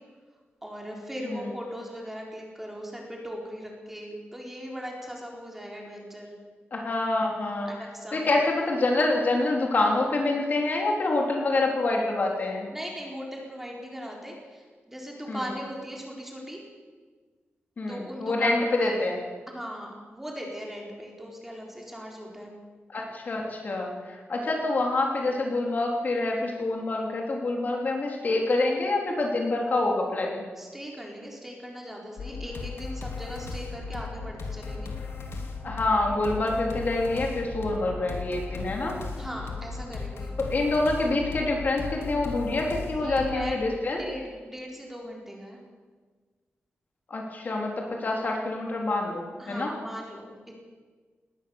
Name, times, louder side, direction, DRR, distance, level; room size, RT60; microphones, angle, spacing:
voice 1, 0.6-6.3 7.7-8.2 12.7-16.6 17.9-19.0 19.5-22.5 30.6-34.9 39.2-40.3 42.8-43.7 44.0-45.6 49.4-50.4, equal, 5° right, -1 dB, 4.1 m, -39 dB
voice 2, 6.7-7.7 8.1-12.7 15.3-15.4 17.8-19.2 22.9-30.4 35.6-39.0 40.4-44.0 47.1-49.7, left 2 dB, 45° left, 0 dB, 3.4 m, -26 dB
sound 1, 32.2-43.5, left 4 dB, 80° left, 2.9 m, -36 dB
19.5 x 19.0 x 7.2 m, 1.5 s
wide cardioid pair, 170°, 4 cm